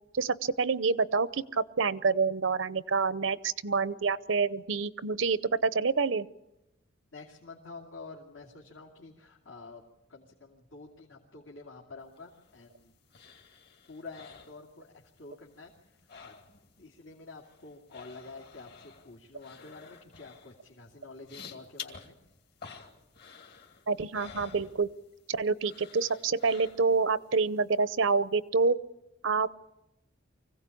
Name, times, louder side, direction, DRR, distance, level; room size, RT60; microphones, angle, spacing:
voice 1, 0.1-6.3 23.9-24.9 25.3-28.8 29.2-29.5, right 4 dB, 75° right, 16 dB, 0.7 m, -27 dB
voice 2, 7.1-9.8 10.1-12.9 13.9-16.5 16.8-22.2, left 3 dB, 75° left, -2 dB, 2.6 m, -48 dB
sound 1, 12.2-15.2 15.5-16.8 17.1-25.3 25.6-27.1 27.5-27.6, left 5 dB, 55° left, 2.6 m, -51 dB
24.5 x 16.5 x 8.5 m, 0.91 s
head